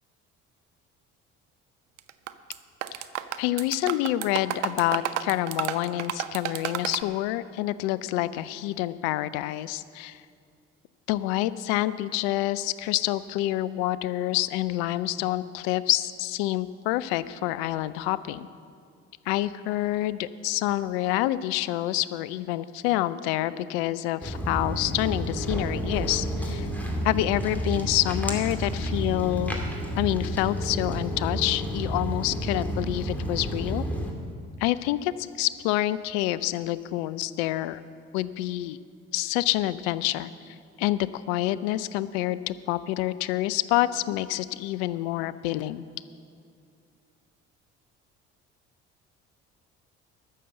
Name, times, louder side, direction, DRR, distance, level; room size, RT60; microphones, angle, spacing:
sound 1, 2.0-2.6 2.8-7.0, right 12 dB, 80° right, 0.5 m, -31 dB
voice 1, 3.4-10.2 11.1-18.5 19.3-26.7 27.0-29.6 30.0-33.8 34.6-37.8 38.1-38.8 39.1-45.8, left 15 dB, 70° left, 16 dB, 0.5 m, -27 dB
Walk footsteps, 24.2-34.1, equal, 5° left, 2.3 m, -30 dB
13.0 x 6.8 x 7.6 m, 2.3 s
hypercardioid pair, 55°, 35 cm